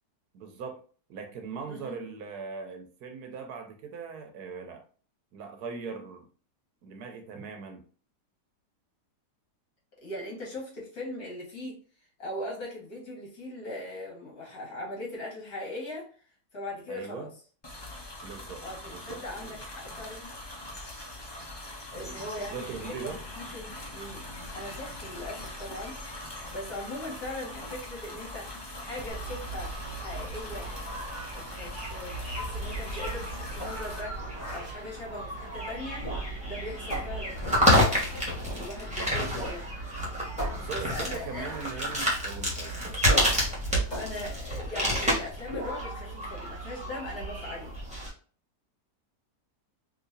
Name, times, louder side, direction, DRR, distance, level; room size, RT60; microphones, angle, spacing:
voice 1, 0.3-0.8 1.1-4.8 5.3-6.3 6.8-7.8 16.9-17.3 18.2-19.6 21.9-23.2 39.0-39.4 40.5-42.8, right 5 dB, 70° right, 1.2 m, -40 dB
voice 2, 1.7-2.0 10.0-11.8 12.2-16.1 16.5-17.3 18.6-20.3 21.9-24.2 24.5-26.0 26.5-30.7 31.3-36.0 36.4-37.7 38.6-39.6 40.7-41.5 44.0-47.7, left 1 dB, 60° left, 2.0 m, -40 dB
sound 1, 17.6-34.0, left 1 dB, 40° left, 0.3 m, -42 dB
sound 2, 29.1-48.1, equal, 5° right, 1.1 m, -30 dB
sound 3, 33.6-34.8 35.9-36.5 36.9-38.3 39.3-39.6 39.9-40.0 40.4-41.8 43.0-43.6 43.9-45.0 45.5-45.8, equal, 25° left, 1.3 m, -38 dB
3.9 x 2.8 x 2.6 m
omnidirectional pair, 1.8 m